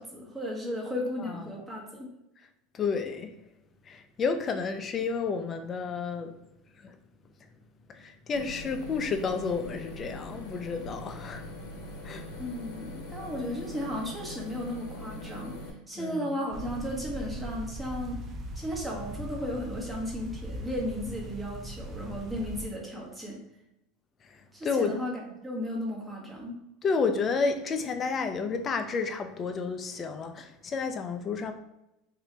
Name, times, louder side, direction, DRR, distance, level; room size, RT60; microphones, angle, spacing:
voice 1, 0.0-2.1 12.4-15.5 15.9-18.2 18.5-23.4 24.5-26.6, left 1 dB, 10° right, 1.1 m, -35 dB
voice 2, 1.2-1.6 2.7-3.4 3.8-6.4 6.7-7.0 7.4-7.5 7.9-11.6 11.9-12.5 16.0-16.4 24.2-25.0 26.8-31.5, left 5 dB, 35° left, 0.4 m, -31 dB
sound 1, 8.3-15.7, left 1 dB, 70° left, 0.9 m, -42 dB
sound 2, 16.5-22.7, right 1 dB, 35° right, 0.6 m, -40 dB
2.8 x 2.6 x 3.3 m
supercardioid pair, 100°, 0 cm